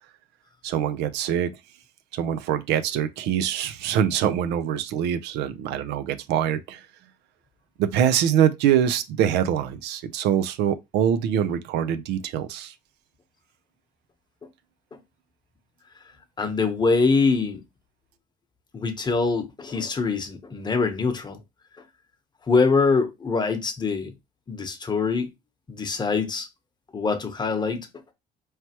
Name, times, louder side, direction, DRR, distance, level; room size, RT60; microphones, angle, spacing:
voice 1, 0.6-1.5 2.1-6.8 7.8-12.7, right 9 dB, 90° right, 0.5 m, -24 dB
voice 2, 16.4-17.6 18.7-21.4 22.5-24.1 24.5-25.3 25.7-26.5 26.9-27.9, left 4 dB, 25° left, 0.9 m, -24 dB
4.4 x 3.2 x 2.9 m
cardioid pair, 110°, 17 cm